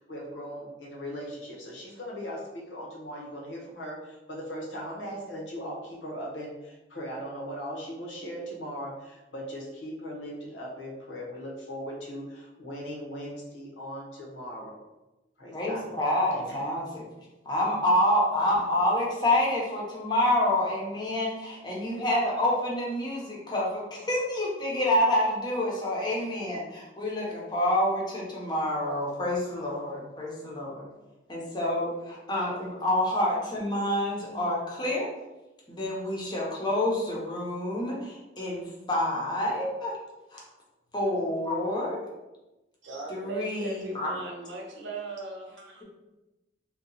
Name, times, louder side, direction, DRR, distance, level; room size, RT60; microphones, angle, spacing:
voice 1, 0.1-14.8 15.4-15.9 16.3-16.6, equal, 80° left, -2 dB, 0.9 m, -39 dB
voice 2, 15.5-17.0 17.4-30.8 31.3-35.1 35.7-40.0 40.3-40.4 40.9-42.0 43.1-44.1, left 1 dB, 25° left, -3 dB, 0.7 m, -28 dB
voice 3, 42.8-45.8, right 3 dB, 85° right, -1 dB, 0.8 m, -38 dB
2.8 x 2.2 x 3.8 m, 1.0 s
head